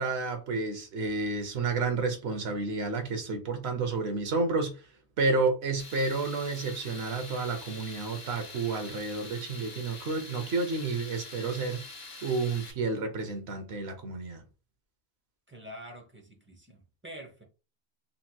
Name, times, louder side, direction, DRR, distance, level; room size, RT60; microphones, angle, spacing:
voice 1, 0.0-4.8 5.2-11.8 12.2-14.4, right 3 dB, 75° right, 0.9 m, -30 dB
Tools, 5.8-12.7, left 3 dB, 70° left, 0.9 m, -45 dB
voice 2, 15.5-17.4, equal, 15° right, 0.5 m, -46 dB
3.1 x 2.8 x 2.2 m
omnidirectional pair, 1.1 m